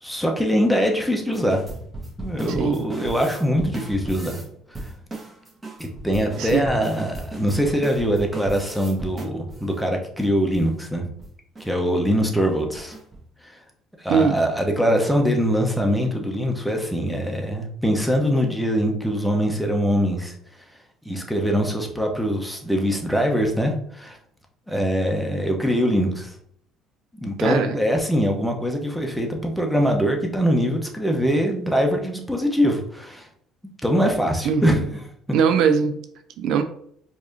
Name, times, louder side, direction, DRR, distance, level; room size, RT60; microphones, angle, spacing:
voice 1, 0.0-1.6 2.2-4.4 5.8-11.1 11.6-12.9 13.4-13.6 14.0-20.3 21.0-24.2 24.7-26.3 27.2-33.3 33.8-35.0, equal, ahead, 2 dB, 0.9 m, -23 dB
sound 1, 1.3-4.5 4.7-9.7 10.2-10.3 10.5-10.7 11.0-11.3 11.5-11.6 12.1-12.3 12.7-13.2, right 2 dB, 25° right, 1.3 m, -36 dB
voice 2, 27.4-27.7 34.4-34.6 35.3-36.0 36.4-36.6, right 6 dB, 65° right, 8 dB, 0.3 m, -20 dB
4.6 x 2.7 x 2.7 m, 0.66 s
hypercardioid pair, 55°, 0 cm